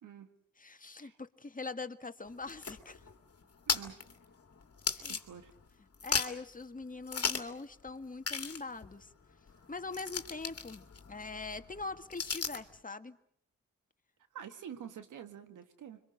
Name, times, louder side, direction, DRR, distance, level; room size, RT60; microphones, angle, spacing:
voice 1, 0.6-3.0 4.9-5.2 6.0-9.1 9.7-13.2, left 3 dB, 25° left, 8 dB, 1.8 m, -43 dB
sound 1, 2.2-5.7 5.9-6.5 7.1-7.6 7.9-8.0 8.2-12.7, left 5 dB, 50° left, 2.3 m, -37 dB
voice 2, 3.7-4.0 5.0-5.5 14.3-16.0, right 8 dB, 80° right, 8 dB, 2.0 m, -47 dB
26.0 x 24.0 x 6.5 m, 0.66 s
supercardioid pair, 45°, 31 cm